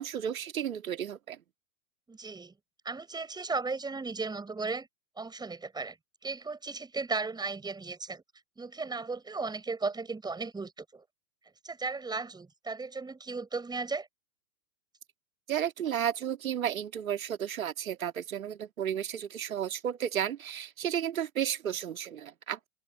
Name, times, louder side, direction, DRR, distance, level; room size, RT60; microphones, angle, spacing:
voice 1, 0.0-1.4 15.5-22.7, right 9 dB, 70° right, 2.1 m, -33 dB
voice 2, 2.1-2.5 2.8-4.9 5.2-6.0 6.2-8.2 8.6-11.0 11.6-14.1, right 4 dB, 10° right, 5.9 m, -35 dB
figure-of-eight pair, 105°, 42 cm